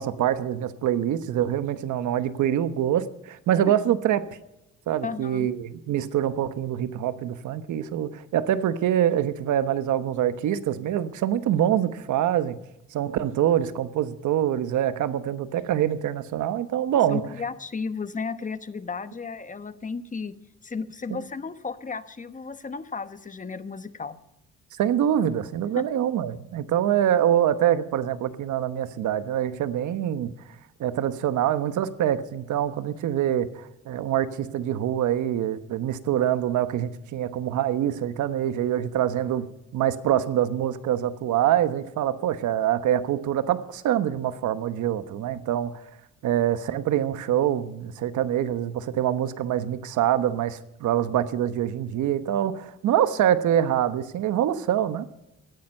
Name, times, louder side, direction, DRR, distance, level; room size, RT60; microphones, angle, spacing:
voice 1, 0.0-4.3 4.9-12.6 12.9-17.2 21.1-21.2 24.8-30.3 30.8-45.8 46.2-55.1, right 10 dB, 75° right, 1.1 m, -25 dB
voice 2, 5.0-5.5 17.1-20.3 20.6-24.2 25.7-25.8, left 5 dB, 25° left, 1.1 m, -34 dB
16.5 x 10.5 x 5.5 m
cardioid pair, 90°, 30 cm